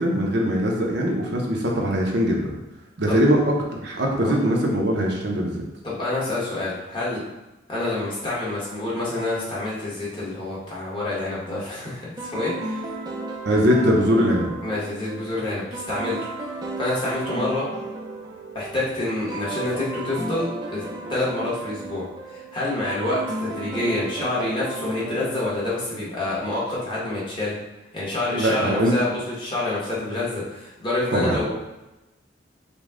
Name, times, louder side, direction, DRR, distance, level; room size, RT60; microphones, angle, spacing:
voice 1, 0.0-2.6 3.0-3.5 3.8-5.6 13.5-14.5 28.3-28.9 31.1-31.4, equal, 60° right, -1 dB, 0.7 m, -21 dB
voice 2, 5.8-7.2 7.7-12.9 14.6-16.2 16.8-17.7 18.5-20.8 21.1-27.5 27.9-31.5, left 2 dB, 25° left, -7 dB, 1.2 m, -27 dB
sound 1, 12.2-26.4, right 2 dB, 20° right, 0.5 m, -34 dB
5.2 x 2.3 x 3.6 m, 0.98 s
head